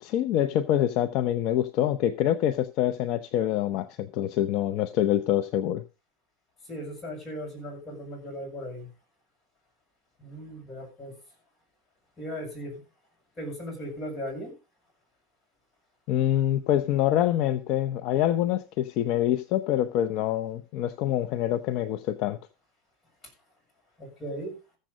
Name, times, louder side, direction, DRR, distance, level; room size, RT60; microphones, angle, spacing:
voice 1, 0.0-5.8 16.1-22.4, left 12 dB, 55° left, 0.8 m, -25 dB
voice 2, 6.6-8.9 10.2-11.1 12.2-12.8 13.4-14.6 23.2-23.3 24.0-24.5, equal, 25° left, 6.8 m, -37 dB
14.5 x 7.6 x 5.1 m
supercardioid pair, 135°, 0 cm